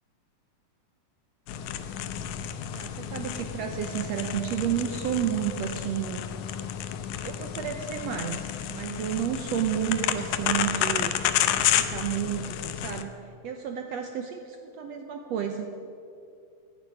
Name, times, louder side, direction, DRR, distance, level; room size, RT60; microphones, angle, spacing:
sound 1, 1.5-13.0, left 10 dB, 75° left, 1.8 m, -30 dB
voice 1, 2.7-6.3 7.2-11.1 11.5-13.2 13.4-15.7, right 10 dB, 85° right, 5 dB, 1.4 m, -31 dB
16.0 x 9.1 x 9.9 m, 2.5 s
omnidirectional pair, 4.2 m